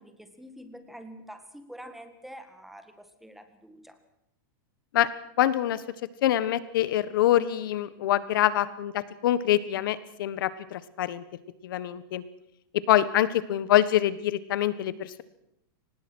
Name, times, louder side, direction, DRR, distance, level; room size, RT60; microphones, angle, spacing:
voice 1, 0.0-4.0, equal, ahead, 8 dB, 1.8 m, -46 dB
voice 2, 5.4-5.8 6.2-11.2 11.6-12.2 12.9-15.2, left 12 dB, 70° left, 16 dB, 1.4 m, -25 dB
24.5 x 19.5 x 6.4 m, 0.81 s
supercardioid pair, 155°, 12 cm